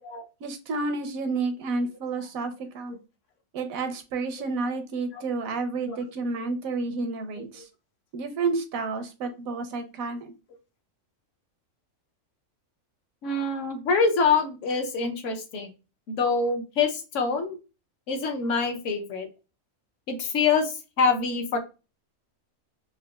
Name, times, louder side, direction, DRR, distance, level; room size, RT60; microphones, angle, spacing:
voice 1, 0.4-3.0 3.5-7.7 8.1-10.3, right 3 dB, 85° right, 7 dB, 1.1 m, -30 dB
voice 2, 13.2-15.7 16.1-17.6 18.1-19.3 20.1-21.6, left 4 dB, 65° left, 5 dB, 1.0 m, -25 dB
3.9 x 2.4 x 2.2 m, 0.30 s
omnidirectional pair, 1.4 m